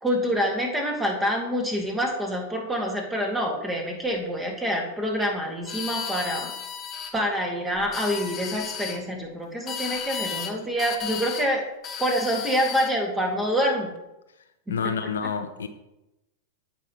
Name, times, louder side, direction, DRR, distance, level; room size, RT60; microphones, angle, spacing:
voice 1, 0.0-6.5 7.1-11.7 12.0-13.9 14.7-14.9, equal, 10° right, 1 dB, 2.1 m, -26 dB
sound 1, 5.7-7.1 7.8-9.0 9.7-10.5 10.8-11.5 11.8-12.9, left 8 dB, 30° left, 1.1 m, -34 dB
voice 2, 14.7-15.7, left 6 dB, 75° left, 8 dB, 0.7 m, -28 dB
15.0 x 5.6 x 3.1 m, 0.94 s
figure-of-eight pair, 95°, 0 cm